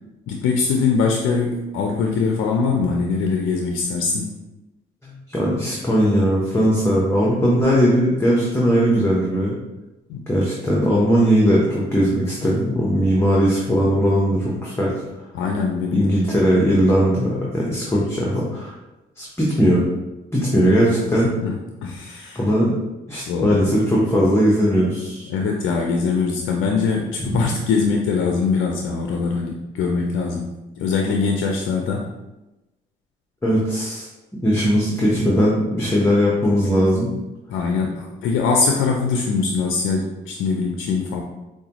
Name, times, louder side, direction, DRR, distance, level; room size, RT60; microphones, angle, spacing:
voice 1, 0.3-4.4 10.1-10.2 15.3-16.2 21.1-21.6 21.8-22.4 23.3-23.6 25.3-30.5 30.8-32.1 37.5-41.2, left 4 dB, 85° left, 1 dB, 0.4 m, -22 dB
voice 2, 5.0-9.5 10.3-14.9 15.9-18.7 19.2-19.8 20.3-21.3 22.3-22.7 23.1-25.3 27.2-27.5 33.4-34.1 34.4-37.1, equal, 10° left, -5 dB, 0.8 m, -19 dB
4.8 x 2.2 x 2.9 m, 1.0 s
cardioid pair, 90°, 20 cm